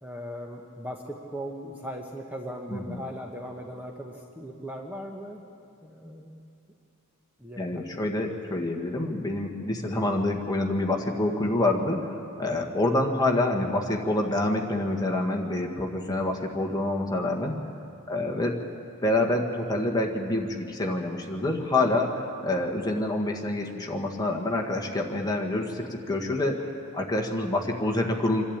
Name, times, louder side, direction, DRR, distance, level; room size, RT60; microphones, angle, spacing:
voice 1, 0.0-5.4 5.8-6.4 7.4-8.1 12.5-12.7 18.1-18.3 24.6-24.7, equal, 5° right, 0 dB, 1.1 m, -39 dB
voice 2, 2.7-3.0 7.6-17.6 18.1-18.6 19.0-28.5, left 2 dB, 15° left, 1 dB, 1.6 m, -27 dB
26.5 x 11.5 x 8.8 m, 2.6 s
head